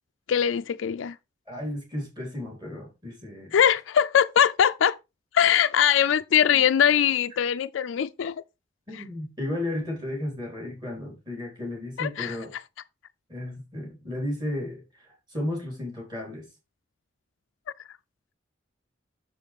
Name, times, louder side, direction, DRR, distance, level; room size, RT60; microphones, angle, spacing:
voice 1, 0.3-1.2 3.5-5.0 5.3-8.4 12.0-12.3, left 9 dB, 85° left, 0.4 m, -22 dB
voice 2, 1.5-3.6 8.9-12.5 13.3-16.5, left 1 dB, 25° right, 3.5 m, -34 dB
6.9 x 6.5 x 3.5 m
head